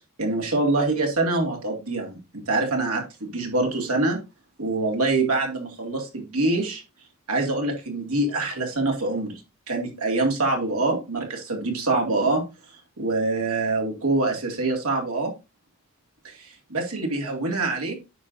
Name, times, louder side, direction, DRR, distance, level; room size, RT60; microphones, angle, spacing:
voice 1, 0.2-4.2 4.6-6.8 7.3-9.4 9.7-12.4 13.0-15.3 16.2-18.0, right 2 dB, 85° right, 2.3 m, -25 dB
9.2 x 6.2 x 2.6 m
head